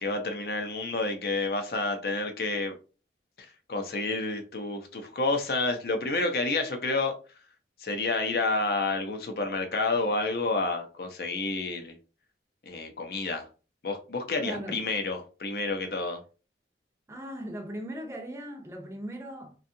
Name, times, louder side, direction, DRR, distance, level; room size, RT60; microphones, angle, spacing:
voice 1, 0.0-2.7 3.4-7.1 7.8-12.0 12.7-13.5 13.8-16.2, left 3 dB, 60° left, 0.6 m, -29 dB
voice 2, 14.4-14.8 17.1-19.6, right 1 dB, 15° right, 0.5 m, -38 dB
2.6 x 2.3 x 2.6 m
head